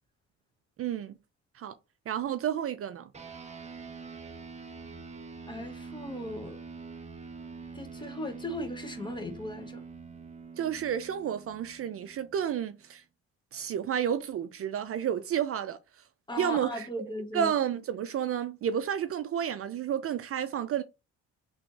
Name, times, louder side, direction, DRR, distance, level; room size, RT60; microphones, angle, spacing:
voice 1, 0.8-1.2 1.5-1.7 2.1-3.1 10.6-13.0 13.5-15.8 16.4-16.9 17.3-20.8, right 9 dB, 50° right, 0.4 m, -31 dB
sound 1, 3.1-12.9, right 4 dB, 20° right, 0.7 m, -45 dB
voice 2, 5.5-6.6 7.7-9.8 16.3-17.5, left 1 dB, 15° left, 0.9 m, -37 dB
3.3 x 2.5 x 3.7 m
cardioid pair, 90°, 30 cm